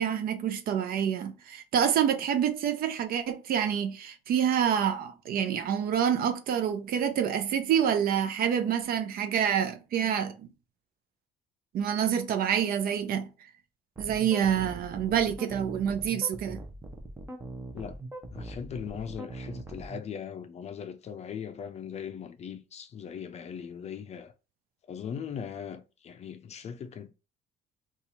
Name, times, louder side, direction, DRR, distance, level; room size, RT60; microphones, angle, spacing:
voice 1, 0.0-10.5 11.7-13.3 14.0-16.6, right 8 dB, 60° right, 0.6 m, -27 dB
sound 1, 14.0-20.0, right 2 dB, 15° right, 0.7 m, -41 dB
voice 2, 18.3-24.3 24.9-27.1, left 7 dB, 40° left, 0.5 m, -39 dB
2.8 x 2.4 x 4.1 m
cardioid pair, 110°, 17 cm